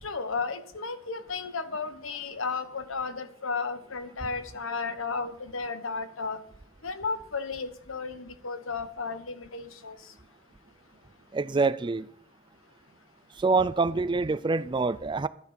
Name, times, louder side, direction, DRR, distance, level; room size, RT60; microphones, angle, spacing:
voice 1, 0.0-6.4 6.8-10.0, left 4 dB, 80° left, 1.2 m, -34 dB
voice 2, 11.3-12.1 13.4-15.3, right 4 dB, 25° right, 0.4 m, -26 dB
12.0 x 11.0 x 4.3 m
head